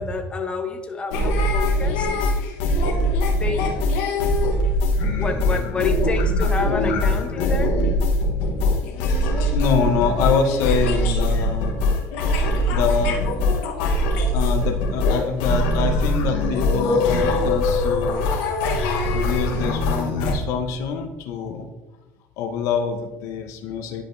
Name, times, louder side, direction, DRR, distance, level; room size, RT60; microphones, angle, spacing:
voice 1, 0.0-2.3 3.4-3.7 5.2-7.7 10.2-10.4 11.3-11.5, left 3 dB, 20° left, 4 dB, 0.8 m, -29 dB
sound 1, 1.1-20.3, left 1 dB, 90° left, 1.1 m, -22 dB
voice 2, 9.5-11.7 12.7-13.2 14.3-18.3 19.1-21.7 22.4-24.0, left 5 dB, 70° left, 5 dB, 0.8 m, -25 dB
10.5 x 4.9 x 2.6 m, 1.1 s
cardioid pair, 110°, 6 cm